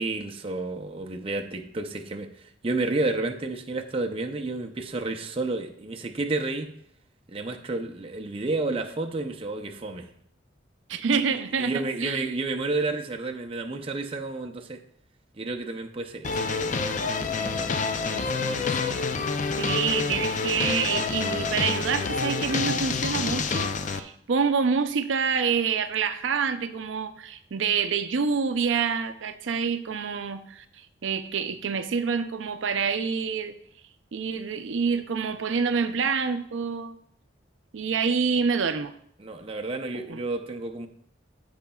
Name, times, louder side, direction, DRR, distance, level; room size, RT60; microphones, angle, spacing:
voice 1, 0.0-6.7 7.3-10.1 11.1-14.8 15.4-19.1 39.2-40.9, right 2 dB, 30° right, 4 dB, 0.6 m, -31 dB
voice 2, 10.9-12.2 19.6-33.5 34.1-37.0 37.7-38.9 40.1-40.2, right 6 dB, 85° right, 9 dB, 0.5 m, -27 dB
sound 1, 16.2-24.0, left 4 dB, 40° left, 0.4 m, -27 dB
14.0 x 5.1 x 2.3 m, 0.67 s
head